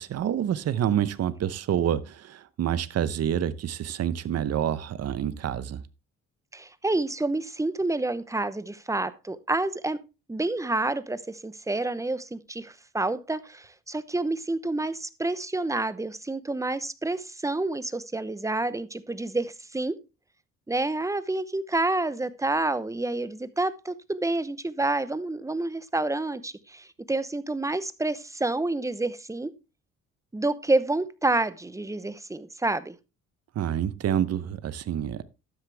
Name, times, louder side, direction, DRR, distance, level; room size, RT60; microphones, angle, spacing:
voice 1, 0.0-5.8 33.5-35.2, right 10 dB, 55° right, 0.9 m, -27 dB
voice 2, 6.5-10.0 10.3-20.0 20.7-29.5 30.3-32.9, right 2 dB, 10° right, 0.9 m, -28 dB
12.5 x 8.3 x 3.4 m
cardioid pair, 90°, 30 cm